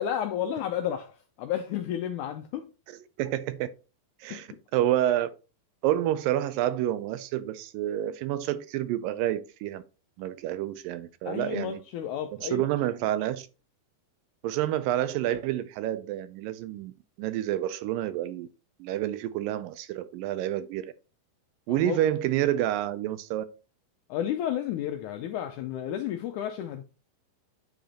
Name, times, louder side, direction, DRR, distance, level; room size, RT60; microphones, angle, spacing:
voice 1, 0.0-2.7 4.3-4.4 11.3-12.7 21.7-22.0 24.1-26.8, left 10 dB, 85° left, 1.7 m, -32 dB
voice 2, 2.9-3.7 4.2-5.3 5.8-9.8 10.2-11.8 12.4-13.5 14.4-16.9 17.2-18.5 18.8-20.9 21.7-23.5, right 12 dB, 80° right, 2.1 m, -28 dB
9.1 x 5.1 x 2.8 m
omnidirectional pair, 4.2 m